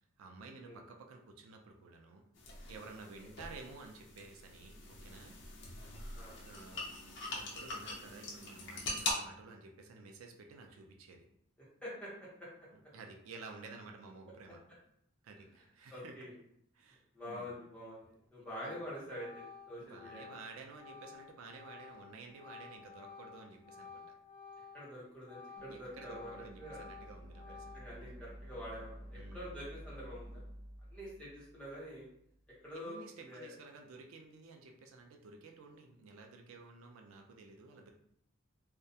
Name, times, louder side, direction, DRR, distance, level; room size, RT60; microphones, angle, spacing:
voice 1, 0.2-2.2 2.7-5.3 6.4-6.9 7.3-11.3 12.7-14.6 15.2-16.2 16.7-17.6 18.6-18.8 19.8-24.1 25.7-27.7 29.2-29.5 32.7-37.9, right 4 dB, 80° right, 3 dB, 0.4 m, -52 dB
sound 1, 2.3-9.1, left 2 dB, 55° left, 0.5 m, -43 dB
voice 2, 15.9-16.3 17.1-20.3 24.7-27.0 27.7-30.4 30.9-32.1 32.6-33.5, equal, 5° left, -8 dB, 0.8 m, -46 dB
Organ, 18.0-18.2 18.6-24.9 25.2-28.1, left 5 dB, 40° right, 1.1 m, -53 dB
sound 2, 25.6-32.6, equal, 15° right, 0.4 m, -52 dB
2.3 x 2.1 x 2.7 m, 0.71 s
head